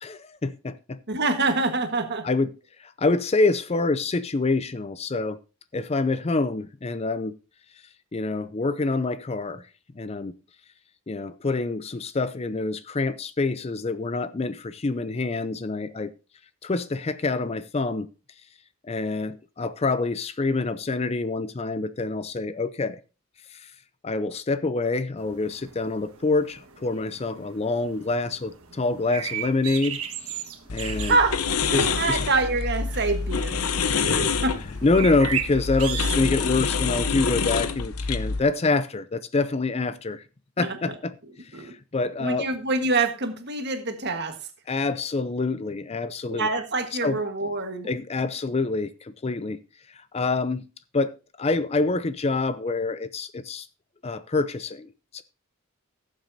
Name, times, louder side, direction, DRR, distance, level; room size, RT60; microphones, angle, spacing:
voice 1, 0.0-1.0 2.2-2.5 2.8-5.4 5.7-7.3 8.1-9.6 10.0-10.3 11.1-16.1 16.6-18.1 18.8-23.0 23.5-23.7 24.0-30.0 30.2-30.4 30.7-31.2 31.7-32.2 33.9-34.4 34.8-40.2 40.6-42.5 44.7-46.5 47.0-47.2 47.8-49.6 49.9-50.6 50.9-53.7 54.0-55.2, left 3 dB, 30° left, 0.4 m, -26 dB
voice 2, 1.1-2.3 30.8-33.6 33.9-34.6 40.6-41.0 41.5-41.7 42.2-44.4 46.2-47.9, right 3 dB, 50° right, 1.5 m, -26 dB
sound 1, 25.2-36.2, right 9 dB, 75° right, 1.4 m, -37 dB
sound 2, 30.7-38.4, left 5 dB, 85° left, 0.8 m, -27 dB
17.5 x 7.4 x 2.7 m
head